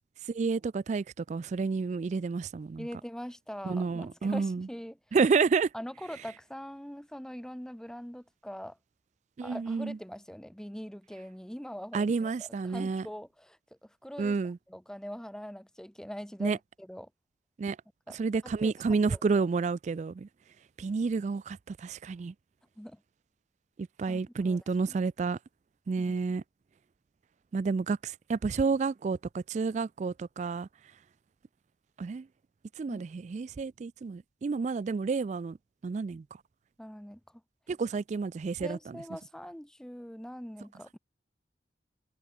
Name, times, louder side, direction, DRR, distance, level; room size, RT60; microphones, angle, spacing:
voice 1, 0.3-2.9 3.6-4.7 5.1-5.7 9.4-10.0 11.9-13.1 14.2-14.6 16.4-16.6 17.6-17.8 18.1-20.3 20.8-22.3 24.0-25.4 25.9-26.4 27.5-30.7 32.0-32.3 32.8-35.6 35.8-36.2 37.7-39.0, right 4 dB, 40° right, 0.3 m, -30 dB
voice 2, 2.8-5.0 5.7-8.8 9.4-14.4 14.7-17.1 18.1-18.2 18.4-18.7 19.1-19.2 22.8-23.0 24.1-24.6 24.9-25.0 26.0-26.2 32.9-33.0 36.8-37.4 38.6-41.0, equal, 5° left, 0.7 m, -43 dB
head